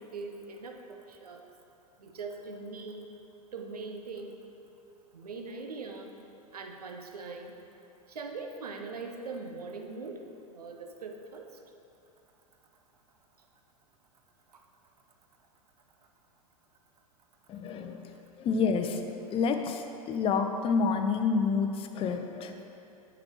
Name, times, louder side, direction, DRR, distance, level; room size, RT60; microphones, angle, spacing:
voice 1, 0.0-1.4 2.0-3.1 3.5-4.4 5.1-6.1 6.5-7.5 8.1-10.3 10.5-11.5 14.5-14.6, right 4 dB, 80° right, 3 dB, 0.7 m, -41 dB
voice 2, 17.5-22.6, left 5 dB, 30° left, 6 dB, 0.6 m, -29 dB
8.5 x 6.0 x 4.7 m, 2.7 s
figure-of-eight pair, 95°, 19 cm